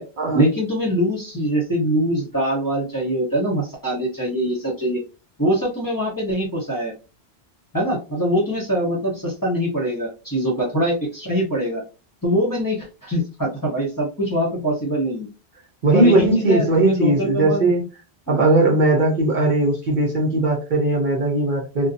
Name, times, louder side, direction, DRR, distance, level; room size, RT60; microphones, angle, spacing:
voice 1, 0.3-5.0 5.4-6.9 7.7-11.8 12.2-15.3 15.9-17.7 18.3-18.4, equal, 20° left, -3 dB, 0.8 m, -23 dB
voice 2, 15.8-17.9 18.3-21.9, right 2 dB, 55° right, -1 dB, 0.7 m, -18 dB
2.6 x 2.2 x 2.5 m, 0.31 s
omnidirectional pair, 1.1 m